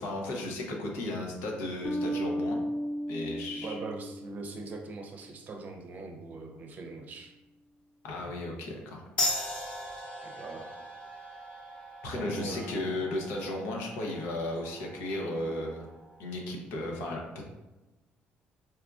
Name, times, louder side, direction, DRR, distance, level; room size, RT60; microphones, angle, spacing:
voice 1, 0.0-2.6 3.1-3.8 8.0-9.0 12.0-15.9 16.2-17.4, left 1 dB, 90° left, 0 dB, 0.7 m, -35 dB
Bass guitar, 1.8-4.9, equal, 15° left, 0.3 m, -34 dB
voice 2, 3.6-7.3 10.2-10.7 12.1-13.0, right 3 dB, 45° right, 3 dB, 0.6 m, -41 dB
sound 1, 9.2-16.3, left 1 dB, 30° left, 0.9 m, -38 dB
4.2 x 2.4 x 2.4 m, 1.1 s
cardioid pair, 110°, 4 cm